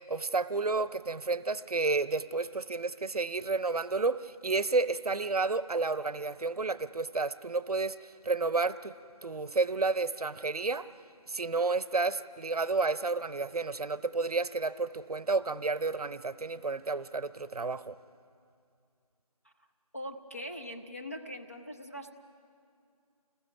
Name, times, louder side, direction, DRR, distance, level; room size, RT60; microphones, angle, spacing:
voice 1, 0.1-8.9 9.2-10.9 11.3-18.0, right 3 dB, 75° right, 15 dB, 0.7 m, -31 dB
voice 2, 19.9-22.1, equal, 25° left, 2 dB, 0.6 m, -41 dB
30.0 x 20.5 x 5.7 m, 2.4 s
figure-of-eight pair, 175°, 19 cm